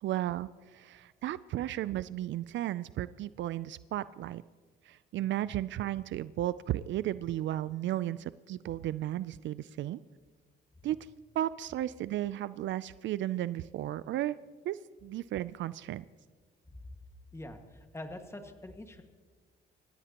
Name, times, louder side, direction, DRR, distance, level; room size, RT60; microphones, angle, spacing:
voice 1, 0.0-4.4 4.8-10.0 10.8-11.0 11.3-14.4 14.7-16.0, right 13 dB, 70° right, 16 dB, 0.4 m, -34 dB
voice 2, 17.3-19.0, left 1 dB, 15° left, 5 dB, 1.8 m, -44 dB
26.5 x 15.0 x 2.9 m, 1.5 s
cardioid pair, 90°, 20 cm